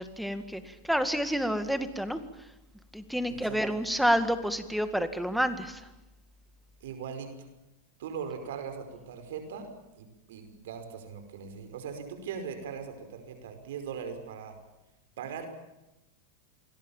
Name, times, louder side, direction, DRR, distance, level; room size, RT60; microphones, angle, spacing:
voice 1, 0.0-2.2 2.9-5.8, equal, ahead, 9 dB, 2.0 m, -29 dB
voice 2, 3.3-3.6 6.8-7.5 8.0-9.7 10.0-14.6 15.2-15.5, right 6 dB, 75° right, 7 dB, 5.1 m, -40 dB
28.0 x 21.5 x 7.4 m, 0.97 s
supercardioid pair, 145°, 0 cm